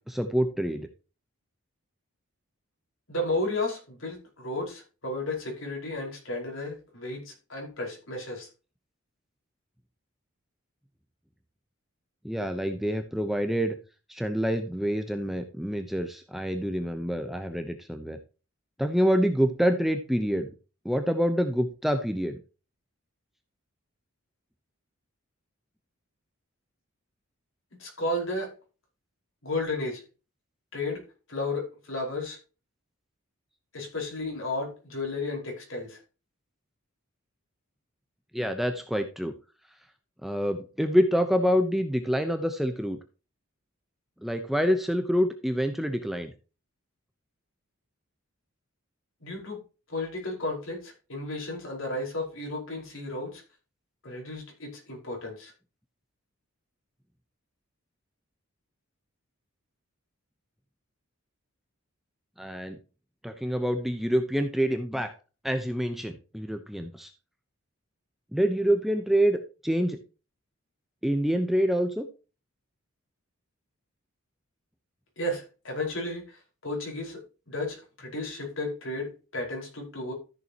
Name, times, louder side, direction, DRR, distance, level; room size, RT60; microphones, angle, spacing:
voice 1, 0.1-0.9 12.2-13.8 14.1-18.2 18.8-20.5 20.8-22.4 38.3-39.3 40.2-43.0 44.2-46.3 62.4-62.8 63.2-65.1 65.4-67.1 68.3-70.0 71.0-72.1, equal, ahead, 6 dB, 0.8 m, -26 dB
voice 2, 3.1-8.5 27.8-28.5 29.4-30.0 30.7-31.0 31.3-32.4 33.7-36.0 49.2-49.6 49.9-53.4 54.0-55.5 75.2-77.2 77.5-80.1, left 2 dB, 65° left, 0 dB, 5.0 m, -33 dB
14.0 x 6.9 x 2.9 m, 0.32 s
head